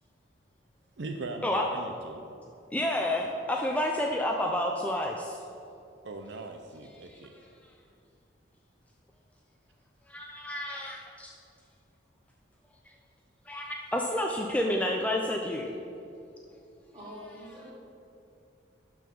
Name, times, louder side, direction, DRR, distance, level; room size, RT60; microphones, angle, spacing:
voice 1, 1.0-2.3 6.0-7.5, right 2 dB, 65° right, 4 dB, 0.6 m, -40 dB
voice 2, 2.7-5.4 10.1-11.3 13.5-15.7, left 1 dB, 5° left, 1 dB, 0.4 m, -30 dB
voice 3, 16.9-17.7, equal, 25° right, -5 dB, 2.3 m, -45 dB
12.0 x 4.7 x 5.3 m, 2.7 s
head